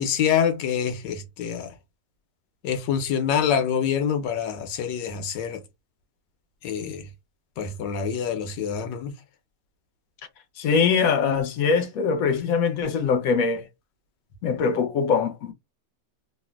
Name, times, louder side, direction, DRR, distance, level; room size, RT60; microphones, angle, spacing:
voice 1, 0.0-1.7 2.6-5.6 6.6-7.1 7.6-9.1, left 8 dB, 85° left, 1.4 m, -26 dB
voice 2, 10.6-13.6 14.4-15.5, left 5 dB, 65° left, 1.0 m, -22 dB
3.3 x 2.5 x 2.3 m
omnidirectional pair, 1.9 m